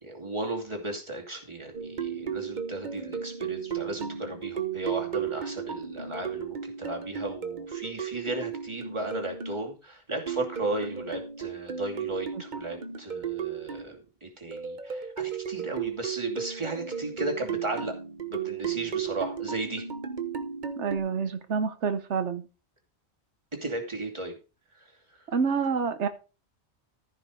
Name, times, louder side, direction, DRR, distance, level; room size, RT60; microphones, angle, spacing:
voice 1, 0.0-17.9 18.3-19.8 23.6-24.3, right 2 dB, 25° right, 1 dB, 2.7 m, -35 dB
sound 1, 1.7-9.6 10.3-13.9 14.5-21.0, right 8 dB, 45° right, 1.3 m, -35 dB
voice 2, 20.8-22.4 25.3-26.1, right 6 dB, 85° right, 9 dB, 1.3 m, -28 dB
14.5 x 5.7 x 5.1 m, 0.32 s
omnidirectional pair, 1.1 m